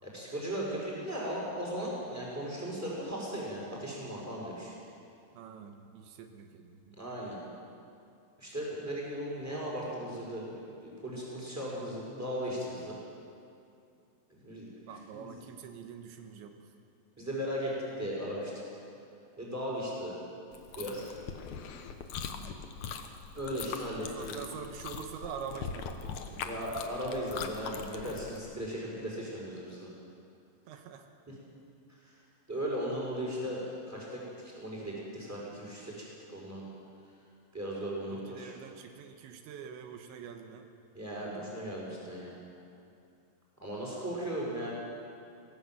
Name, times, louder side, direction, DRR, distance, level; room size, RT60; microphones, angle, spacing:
voice 1, 0.0-4.7 7.0-7.4 8.4-13.0 14.3-14.7 15.1-15.4 17.2-18.5 19.4-20.1 20.7-21.1 23.3-24.3 26.2-29.9 31.3-31.4 31.9-32.2 32.5-36.6 37.5-38.5 40.9-42.4 43.6-44.7, equal, 5° right, -5 dB, 6.2 m, -37 dB
voice 2, 5.4-7.0 14.9-16.7 22.3-22.6 24.2-26.6 30.7-31.1 37.8-40.7, right 7 dB, 85° right, 6 dB, 3.5 m, -45 dB
Chewing mastication, 20.5-28.4, left 6 dB, 85° left, 1.6 m, -41 dB
23.5 x 17.5 x 8.1 m, 2.5 s
omnidirectional pair, 5.2 m